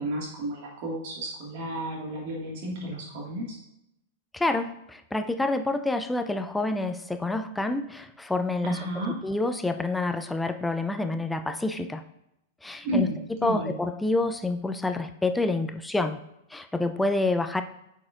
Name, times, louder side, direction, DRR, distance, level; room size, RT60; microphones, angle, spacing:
voice 1, 0.0-3.6 8.6-9.2 12.8-13.1 13.4-13.7, right 1 dB, 55° right, -3 dB, 1.8 m, -31 dB
voice 2, 4.3-8.8 9.1-12.0 12.6-13.1 13.4-16.2 16.5-17.6, left 2 dB, 5° left, 8 dB, 0.4 m, -28 dB
8.3 x 4.6 x 2.5 m, 0.82 s
hypercardioid pair, 105°, 0 cm